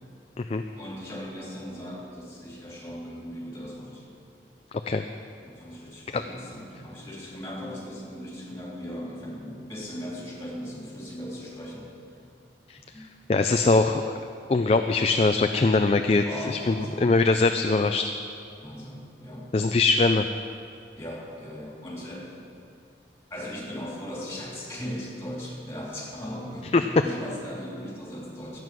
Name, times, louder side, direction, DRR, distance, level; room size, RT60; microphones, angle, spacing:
voice 1, 0.8-4.0 5.4-11.9 12.9-13.7 16.2-17.1 18.6-19.5 21.0-22.4 23.3-28.6, equal, 15° left, -4 dB, 3.3 m, -38 dB
voice 2, 13.3-14.0 14.5-18.1 19.5-20.3 26.7-26.8, left 3 dB, 35° left, 7 dB, 0.3 m, -22 dB
13.5 x 9.1 x 6.1 m, 2.4 s
head